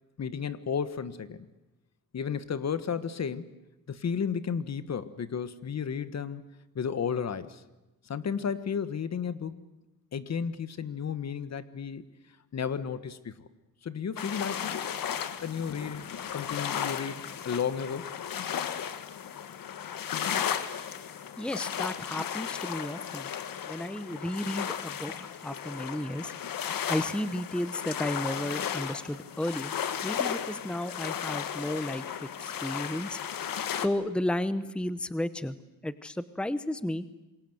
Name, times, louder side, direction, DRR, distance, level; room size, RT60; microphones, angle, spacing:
voice 1, 0.2-1.5 2.1-3.5 3.9-6.4 6.7-7.6 8.0-9.6 10.1-12.0 12.5-13.5 13.8-14.8 15.4-16.0 16.3-18.1, left 7 dB, 50° left, 13 dB, 1.4 m, -33 dB
sound 1, 14.2-33.9, left 9 dB, 70° left, 1.6 m, -35 dB
voice 2, 21.4-23.3 23.7-26.3 26.9-29.7 30.0-33.2 33.7-35.5 35.8-37.1, left 1 dB, 5° left, 13 dB, 1.0 m, -33 dB
27.0 x 22.5 x 8.0 m, 1.0 s
cardioid pair, 100°, 35 cm